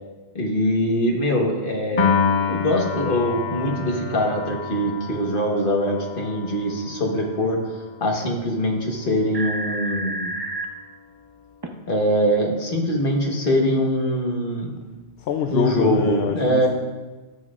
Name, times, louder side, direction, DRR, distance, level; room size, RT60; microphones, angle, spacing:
voice 1, 0.3-2.1 2.5-7.6 8.0-10.3 11.9-14.8 15.5-16.7, equal, 55° left, 0 dB, 1.5 m, -22 dB
Piano, 2.0-8.4, left 6 dB, 40° left, 0.6 m, -28 dB
sound 1, 9.0-9.1 9.3-10.7 11.6-11.7, right 2 dB, 25° right, 0.6 m, -29 dB
voice 2, 15.2-16.7, left 7 dB, 75° left, 6 dB, 0.8 m, -25 dB
12.5 x 7.1 x 2.5 m, 1.2 s
omnidirectional pair, 1.1 m